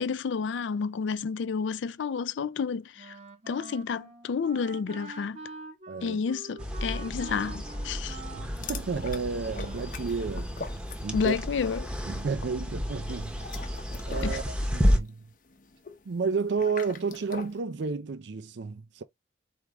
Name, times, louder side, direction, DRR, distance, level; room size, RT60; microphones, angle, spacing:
voice 1, 0.0-3.2 3.5-5.4 6.0-8.2 11.1-11.9 14.2-14.4, left 5 dB, 80° left, 0.4 m, -30 dB
Wind instrument woodwind instrument, 3.0-10.0, right 3 dB, 35° right, 0.7 m, -46 dB
voice 2, 5.9-6.2 8.3-10.6 11.0-11.3 12.1-13.6 14.0-15.2 16.1-19.0, right 5 dB, 70° right, 0.5 m, -32 dB
sound 1, 6.6-15.0, equal, 5° right, 0.8 m, -31 dB
sound 2, 8.5-11.5 11.7-12.1 13.2-17.6, left 4 dB, 45° left, 0.7 m, -43 dB
4.6 x 3.5 x 3.0 m
head